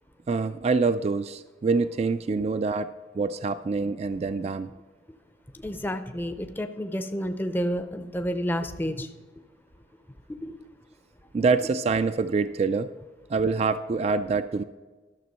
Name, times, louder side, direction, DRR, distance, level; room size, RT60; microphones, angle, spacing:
voice 1, 0.3-4.7 11.3-12.9 13.3-14.6, right 4 dB, 35° right, 12 dB, 0.3 m, -25 dB
voice 2, 5.5-9.1 10.3-10.6, equal, 10° left, 8 dB, 0.5 m, -30 dB
12.0 x 6.8 x 5.4 m, 1.3 s
head